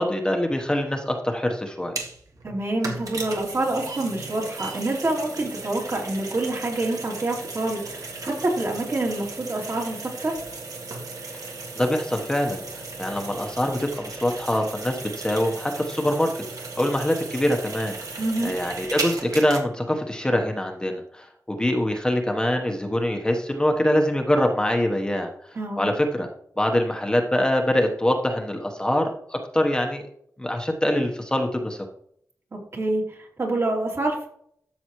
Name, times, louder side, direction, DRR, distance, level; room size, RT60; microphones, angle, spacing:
voice 1, 0.0-2.0 11.7-12.6 13.0-16.3 16.8-17.9 18.4-25.3 25.8-26.3 26.6-30.0 30.4-31.8, left 1 dB, 15° left, 3 dB, 1.1 m, -24 dB
sound 1, 1.8-19.6, right 3 dB, 85° right, 1.9 m, -36 dB
voice 2, 2.4-10.4 18.2-18.6 25.5-25.9 32.5-34.3, right 2 dB, 50° right, 0 dB, 2.9 m, -27 dB
12.5 x 7.0 x 3.1 m, 0.66 s
wide cardioid pair, 115°, 6 cm